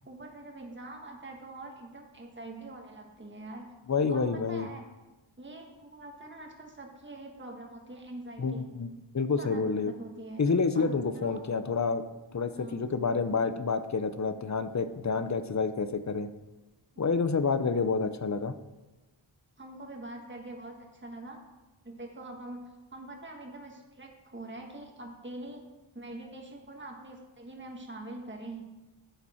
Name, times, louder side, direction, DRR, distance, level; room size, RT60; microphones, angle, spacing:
voice 1, 0.0-3.7 4.1-4.8 5.4-8.6 9.4-10.4 10.7-11.4 12.5-12.9 16.9-17.0 19.6-21.4 21.8-25.6 25.9-28.6, right 2 dB, 25° right, 1 dB, 1.5 m, -44 dB
voice 2, 3.9-4.7 8.4-8.9 9.1-9.9 10.4-12.0 12.3-16.3 17.0-18.5, left 4 dB, 35° left, 11 dB, 0.7 m, -28 dB
11.0 x 7.1 x 4.3 m, 1.1 s
wide cardioid pair, 65°, 48 cm